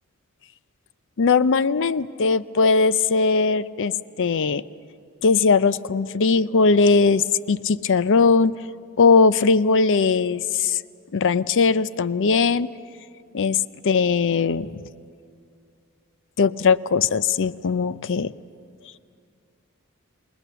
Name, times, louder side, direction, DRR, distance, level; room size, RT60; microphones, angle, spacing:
voice 1, 1.2-3.9 4.2-4.6 5.2-8.6 9.0-10.8 11.1-12.7 13.3-13.6 13.8-14.8 16.4-18.3, left 4 dB, 60° left, 16 dB, 0.5 m, -19 dB
28.0 x 21.0 x 7.0 m, 2.3 s
head